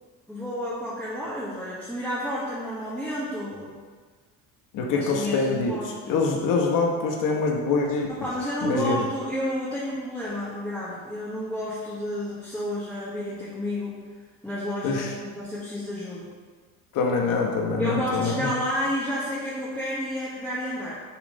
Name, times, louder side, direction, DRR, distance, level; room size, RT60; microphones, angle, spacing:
voice 1, 0.3-3.7 4.9-6.1 8.1-14.0 14.4-16.3 17.8-21.0, equal, 5° left, -9 dB, 1.2 m, -31 dB
voice 2, 4.7-8.1 8.6-9.0 14.8-15.1 16.9-18.5, left 4 dB, 60° left, 0 dB, 1.1 m, -25 dB
7.3 x 3.1 x 5.2 m, 1.5 s
cardioid pair, 140°, 36 cm